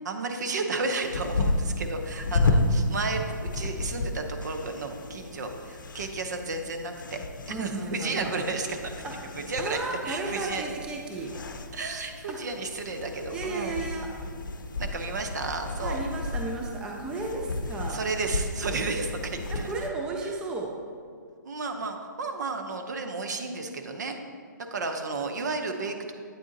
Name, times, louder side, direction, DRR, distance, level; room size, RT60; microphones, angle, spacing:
voice 1, 0.0-7.2 7.5-8.9 9.4-10.7 11.7-13.8 14.8-16.0 17.9-19.7 21.4-24.2 24.7-26.1, right 3 dB, 60° right, 5 dB, 0.7 m, -32 dB
sound 1, 1.0-19.9, left 2 dB, 80° left, 0.6 m, -32 dB
voice 2, 7.5-8.3 9.0-9.1 9.6-11.3 12.3-12.4 13.3-14.1 15.8-18.0 19.5-20.7, right 2 dB, 5° right, 0 dB, 0.3 m, -33 dB
8.5 x 3.7 x 3.9 m, 2.1 s
hypercardioid pair, 150°, 10 cm